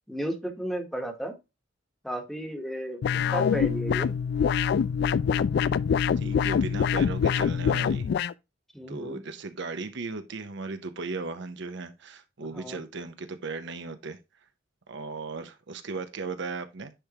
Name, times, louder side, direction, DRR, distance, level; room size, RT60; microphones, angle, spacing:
voice 1, 0.1-1.3 2.0-4.1 8.7-9.2 12.5-12.8, right 1 dB, ahead, 1.1 m, -33 dB
sound 1, 3.0-8.3, left 7 dB, 60° left, 0.3 m, -25 dB
voice 2, 6.2-8.1 8.9-14.2 14.9-16.9, right 3 dB, 65° right, 0.7 m, -36 dB
10.0 x 3.5 x 2.9 m
head